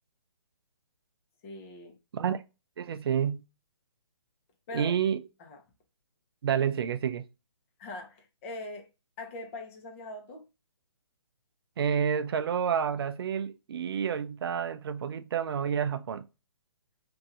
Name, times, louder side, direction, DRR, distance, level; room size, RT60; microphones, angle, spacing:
voice 1, 1.4-2.0 4.7-4.9 5.4-5.6 7.8-8.9 9.2-10.4, left 2 dB, 25° left, 0.8 m, -41 dB
voice 2, 2.8-3.4 4.7-5.2 6.4-7.3 11.8-16.3, right 8 dB, 55° right, 0.4 m, -29 dB
2.9 x 2.6 x 3.6 m
hypercardioid pair, 155°, 15 cm